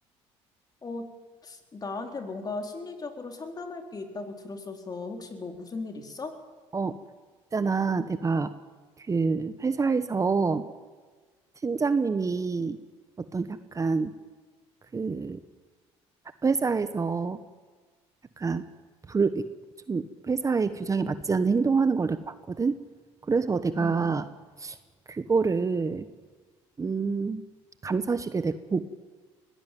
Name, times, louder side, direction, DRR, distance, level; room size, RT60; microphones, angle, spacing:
voice 1, 1.4-6.3 23.8-24.1, left 3 dB, 35° left, 4 dB, 4.0 m, -37 dB
voice 2, 7.5-8.5 9.1-10.7 11.6-12.8 13.3-14.1 14.9-15.4 16.4-17.4 18.4-18.6 19.1-19.5 19.9-22.8 23.3-24.2 24.6-24.8 25.1-26.1 26.8-27.4 27.8-29.0, right 4 dB, 25° right, 12 dB, 1.1 m, -26 dB
21.5 x 16.5 x 9.2 m, 1.4 s
supercardioid pair, 85°, 12 cm